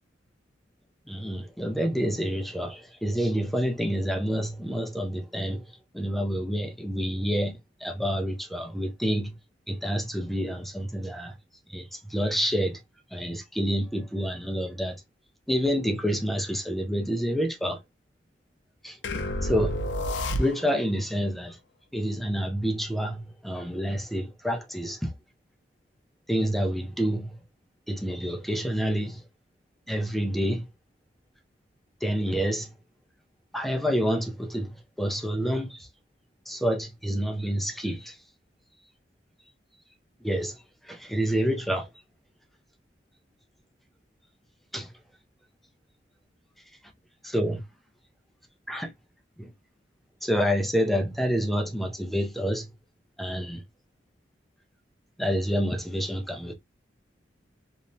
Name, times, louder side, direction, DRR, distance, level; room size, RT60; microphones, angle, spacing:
voice 1, 1.1-9.4 9.7-11.4 11.7-12.8 13.1-15.0 15.5-17.8 18.8-19.0 19.4-19.8 20.4-21.6 21.9-25.1 26.3-27.4 27.9-29.2 29.9-30.7 32.0-32.7 33.5-35.9 36.5-38.2 40.2-41.9 44.7-44.9 47.2-47.6 48.7-48.9 49.4-49.5 50.2-52.7 53.2-53.6 55.2-56.5, equal, ahead, 0.4 m, -28 dB
sound 1, 19.0-20.9, left 1 dB, 70° left, 0.5 m, -30 dB
2.9 x 2.1 x 2.6 m
head